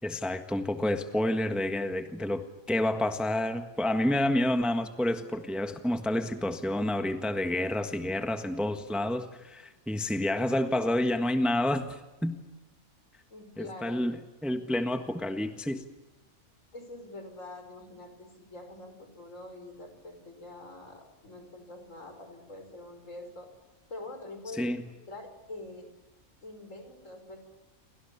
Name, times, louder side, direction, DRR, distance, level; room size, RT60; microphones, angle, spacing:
voice 1, 0.0-12.4 13.6-14.2 14.4-15.8 24.6-24.8, left 1 dB, ahead, 7 dB, 1.4 m, -29 dB
voice 2, 13.3-14.0 16.7-23.5 23.9-25.9 26.4-27.4, left 2 dB, 65° left, 6 dB, 5.9 m, -45 dB
29.0 x 24.5 x 7.0 m, 1.1 s
omnidirectional pair, 1.5 m